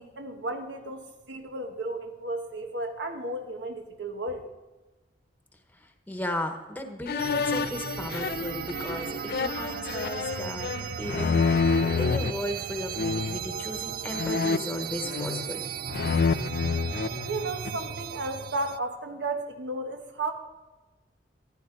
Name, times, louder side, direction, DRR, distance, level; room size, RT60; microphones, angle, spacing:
voice 1, 0.0-4.4 17.2-20.3, right 2 dB, 90° right, 4 dB, 1.2 m, -34 dB
voice 2, 6.1-10.7 11.0-15.6, left 1 dB, 10° left, 5 dB, 1.0 m, -35 dB
sound 1, 7.1-12.3 13.0-13.5 14.1-15.6 15.9-17.9, left 5 dB, 60° left, 0.4 m, -28 dB
sound 2, 7.2-18.8, right 8 dB, 55° right, 0.4 m, -36 dB
14.5 x 11.5 x 3.8 m, 1.1 s
head